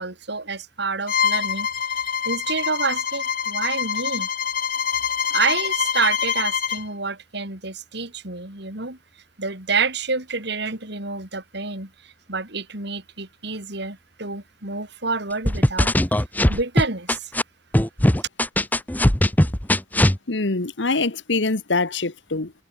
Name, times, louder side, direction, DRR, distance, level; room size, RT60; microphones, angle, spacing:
voice 1, 0.0-1.7 2.0-4.3 5.3-9.0 9.4-15.9 16.5-17.3, right 4 dB, 65° right, 5.5 m, -28 dB
Bowed string instrument, 1.1-6.9, left 7 dB, 50° left, 1.8 m, -25 dB
sound 1, 15.4-17.4 17.7-20.2, left 1 dB, 10° left, 1.1 m, -19 dB
voice 2, 20.3-22.5, left 3 dB, 70° left, 1.4 m, -24 dB
head